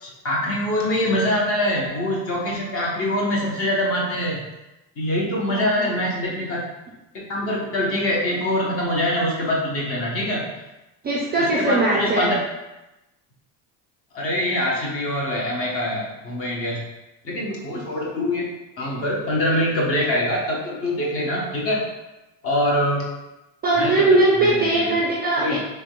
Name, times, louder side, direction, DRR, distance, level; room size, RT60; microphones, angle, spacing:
voice 1, 0.0-4.4 5.0-6.6 7.3-10.4 11.4-12.4 14.1-16.8 17.2-18.5 18.8-21.8 22.4-23.0 23.8-24.1 24.5-25.0 25.4-25.6, left 1 dB, 35° left, -3 dB, 0.8 m, -24 dB
voice 2, 5.5-5.9 11.0-12.3 17.7-17.8 23.6-25.6, right 2 dB, 25° right, -4 dB, 0.4 m, -20 dB
3.4 x 3.1 x 2.2 m, 0.99 s
cardioid pair, 150°, 39 cm